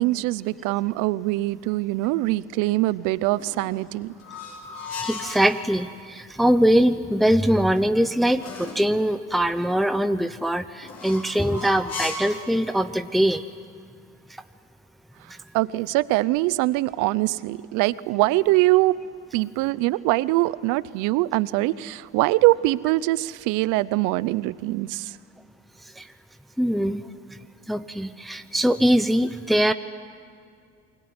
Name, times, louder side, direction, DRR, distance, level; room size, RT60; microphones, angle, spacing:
voice 1, 0.0-4.1 15.5-19.0 19.3-25.2, right 19 dB, 80° right, 19 dB, 0.7 m, -23 dB
sound 1, 3.3-5.5 7.5-8.9 10.8-12.4, left 3 dB, 55° left, 6.3 m, -36 dB
voice 2, 5.0-13.5 15.3-15.4 25.8-26.1 26.6-27.1 27.7-29.7, equal, ahead, 10 dB, 1.0 m, -22 dB
28.5 x 22.0 x 9.6 m, 2.2 s
supercardioid pair, 60°, 30 cm